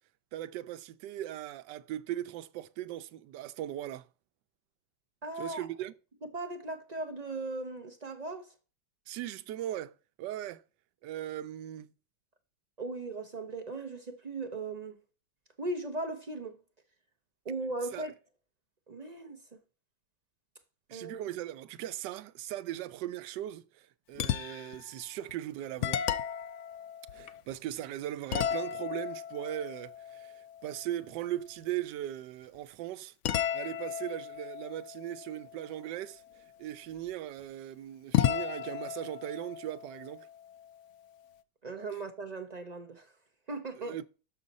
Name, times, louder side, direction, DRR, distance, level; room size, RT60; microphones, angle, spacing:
voice 1, 0.3-4.1 5.4-5.9 9.1-10.6 11.0-11.9 17.9-18.1 20.9-26.1 27.1-33.1 33.5-40.3 43.8-44.0, right 12 dB, 85° right, 1.2 m, -39 dB
voice 2, 5.2-5.7 6.2-8.5 12.8-15.0 15.6-16.6 17.4-18.1 18.9-19.6 20.9-21.2 41.6-43.1 43.5-44.0, right 2 dB, 60° right, 0.4 m, -38 dB
sound 1, 24.1-24.8 25.3-25.4 25.8-27.8 28.3-31.0 33.2-35.9 38.1-40.7, left 10 dB, 85° left, 0.6 m, -34 dB
6.4 x 6.3 x 4.0 m
omnidirectional pair, 1.8 m